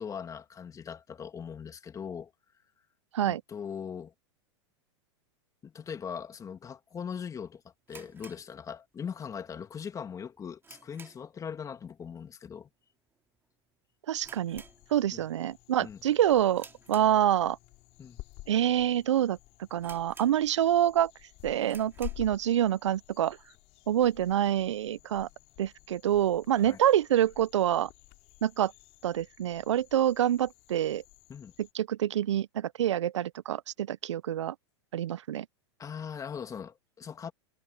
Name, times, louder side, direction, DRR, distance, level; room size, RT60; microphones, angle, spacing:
voice 1, 0.0-2.3 3.2-4.1 5.6-7.6 7.9-12.7 15.1-15.2 15.8-16.0 18.0-18.2 26.6-26.8 31.3-31.5 35.8-37.3, left 7 dB, 20° left, 2.3 m, -40 dB
sound 1, 7.8-9.2 9.5-9.6 10.1-11.5 11.7-12.0 12.3-12.4 13.1-13.4 13.7-13.8 14.2-15.3 15.7-16.0 16.5-17.6 18.2-18.3 18.9-19.0 19.3-19.4 19.8-20.8 21.1-21.2 21.6-22.3, right 4 dB, 15° right, 2.5 m, -52 dB
voice 2, 14.1-14.6 14.9-17.6 18.5-19.4 19.7-21.1 21.4-23.4 23.9-25.3 25.6-27.9 28.4-28.7 29.0-31.0 31.6-34.5 34.9-35.5, right 11 dB, 80° right, 0.6 m, -26 dB
sound 2, 14.2-31.7, left 19 dB, 45° left, 3.6 m, -51 dB
hypercardioid pair, 105°, 15 cm